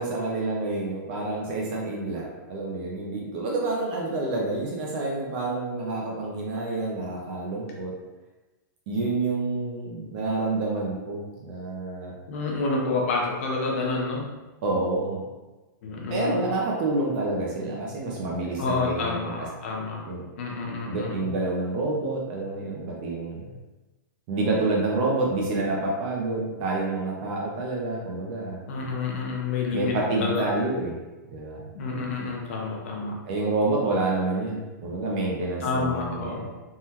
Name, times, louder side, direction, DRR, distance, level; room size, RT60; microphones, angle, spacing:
voice 1, 0.0-7.9 8.9-12.2 14.6-15.3 16.1-19.1 20.0-20.2 20.9-23.5 24.3-28.7 29.7-30.9 31.3-31.6 33.3-36.5, right 2 dB, 30° right, -2 dB, 0.4 m, -28 dB
voice 2, 12.3-14.3 15.8-16.5 18.6-20.0 20.4-21.3 28.7-30.5 31.7-33.2 35.6-36.5, left 3 dB, 40° left, -1 dB, 0.4 m, -29 dB
3.5 x 2.1 x 2.8 m, 1.1 s
supercardioid pair, 175°, 11 cm